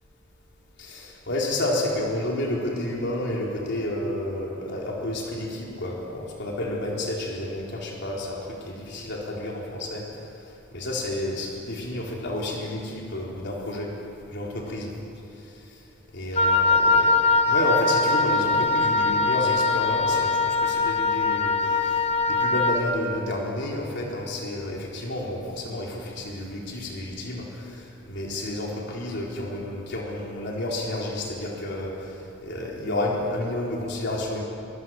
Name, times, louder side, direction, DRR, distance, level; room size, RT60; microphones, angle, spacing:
voice 1, 0.8-10.1 10.7-13.9 14.3-14.9 16.1-34.4, left 1 dB, 55° left, -2 dB, 4.2 m, -30 dB
Wind instrument woodwind instrument, 16.4-22.9, left 3 dB, 30° left, 1.1 m, -22 dB
24.5 x 23.5 x 7.8 m, 2.8 s
head